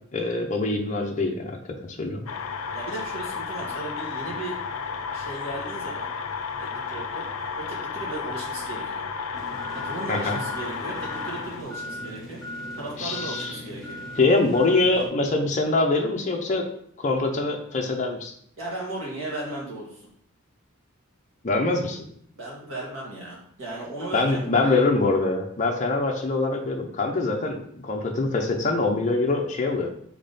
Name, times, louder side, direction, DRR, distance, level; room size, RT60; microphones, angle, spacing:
voice 1, 0.1-1.6 2.0-2.2 10.1-10.4 13.0-13.5 14.2-16.6 17.0-18.3 21.4-22.0 24.1-27.6 27.8-29.9, left 3 dB, 35° left, 1 dB, 0.6 m, -24 dB
sound 1, 2.3-11.6, left 5 dB, 80° left, 0.5 m, -33 dB
voice 2, 2.7-4.6 5.1-6.1 6.6-7.3 7.6-9.0 9.7-12.4 12.8-14.0 18.6-20.0 22.4-24.9, right 2 dB, 70° right, -4 dB, 1.8 m, -36 dB
sound 2, 9.3-15.1, left 1 dB, ahead, 1.4 m, -38 dB
3.6 x 3.6 x 4.0 m, 0.65 s
head